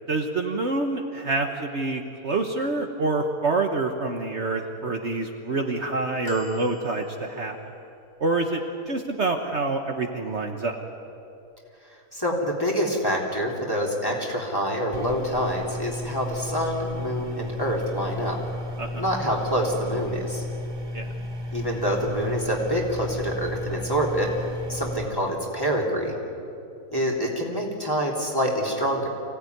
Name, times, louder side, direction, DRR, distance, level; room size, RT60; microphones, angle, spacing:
voice 1, 0.1-7.7 8.2-10.8 18.8-19.0 20.9-21.1, right 3 dB, 50° right, 3 dB, 1.4 m, -27 dB
sound 1, 6.2-7.7 8.4-8.5, equal, 80° left, 2.8 m, -41 dB
voice 2, 12.1-18.4 18.9-20.4 21.5-24.4 24.7-26.2 26.9-29.1, equal, 15° left, -1 dB, 3.2 m, -26 dB
sound 2, 14.9-25.0, left 1 dB, 20° right, 0.9 m, -34 dB
25.0 x 17.0 x 9.4 m, 2.7 s
omnidirectional pair, 1.6 m